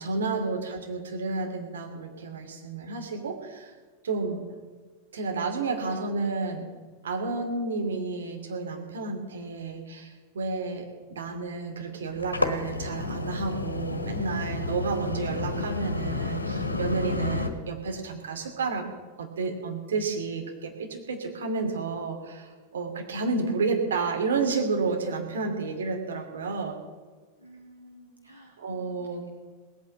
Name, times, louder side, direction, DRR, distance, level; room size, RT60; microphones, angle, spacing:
voice 1, 0.0-3.7 4.0-4.4 5.1-6.7 7.0-18.9 19.2-26.7 28.6-29.3, right 4 dB, 65° right, 3 dB, 2.7 m, -31 dB
sound 1, 12.1-17.5, left 3 dB, 80° left, 1.4 m, -31 dB
voice 2, 27.4-29.0, equal, 85° right, -1 dB, 2.2 m, -52 dB
19.0 x 9.1 x 7.8 m, 1.5 s
figure-of-eight pair, 90°, 0 cm